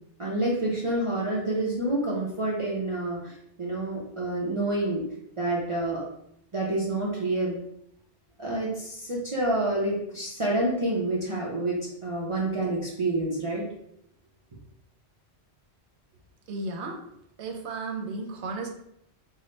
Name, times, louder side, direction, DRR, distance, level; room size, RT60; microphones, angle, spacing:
voice 1, 0.2-5.0 5.4-6.0 6.5-7.6 8.4-13.6, right 2 dB, 35° right, -5 dB, 0.6 m, -28 dB
voice 2, 16.5-17.0 17.4-18.7, right 3 dB, 85° right, 2 dB, 0.9 m, -34 dB
3.6 x 2.1 x 4.1 m, 0.75 s
omnidirectional pair, 1.1 m